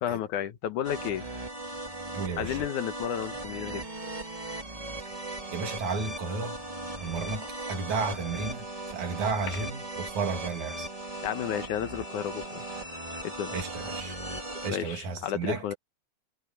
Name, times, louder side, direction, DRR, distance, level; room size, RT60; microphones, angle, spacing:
voice 1, 0.0-1.3 2.4-3.8 9.5-9.6 11.2-12.6 13.2-13.6 14.7-15.7, left 10 dB, 80° left, 2.6 m, -32 dB
sound 1, 0.8-14.7, right 2 dB, 15° right, 2.0 m, -38 dB
voice 2, 2.1-2.6 5.5-6.6 7.0-10.9 13.5-14.2 14.6-15.6, right 4 dB, 70° right, 3.9 m, -33 dB
omnidirectional pair, 3.5 m